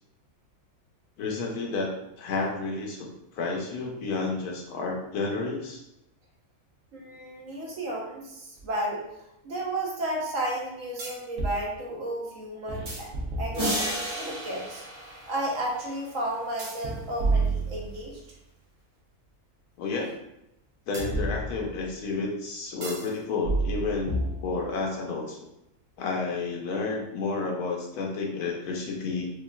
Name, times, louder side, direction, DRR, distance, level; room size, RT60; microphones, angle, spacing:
voice 1, 1.2-1.9 2.2-5.8 19.8-20.1 20.9-25.4 26.0-29.3, left 3 dB, 80° left, 0 dB, 1.3 m, -31 dB
voice 2, 6.9-13.1 13.4-14.9 15.2-18.2, right 1 dB, 60° right, -2 dB, 1.2 m, -33 dB
sound 1, 8.6-8.7 11.0-11.6 12.7-14.0 16.6-18.3 20.9-21.9 22.8-23.1 23.4-24.8, right 2 dB, 80° right, 1.3 m, -30 dB
sound 2, 13.5-16.3, equal, 25° right, 1.3 m, -33 dB
5.1 x 2.4 x 2.3 m, 0.86 s
omnidirectional pair, 1.6 m